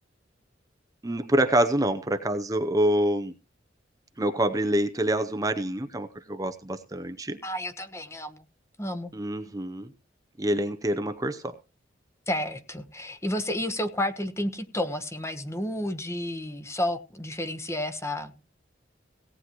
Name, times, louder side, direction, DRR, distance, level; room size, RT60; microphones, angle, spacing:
voice 1, 1.0-3.3 4.2-7.4 9.1-9.9 10.4-11.5, right 1 dB, 20° right, 7 dB, 0.7 m, -26 dB
voice 2, 7.4-8.4 8.8-9.1 12.3-18.4, left 1 dB, 15° left, 10 dB, 1.1 m, -31 dB
17.5 x 9.7 x 3.0 m, 0.30 s
head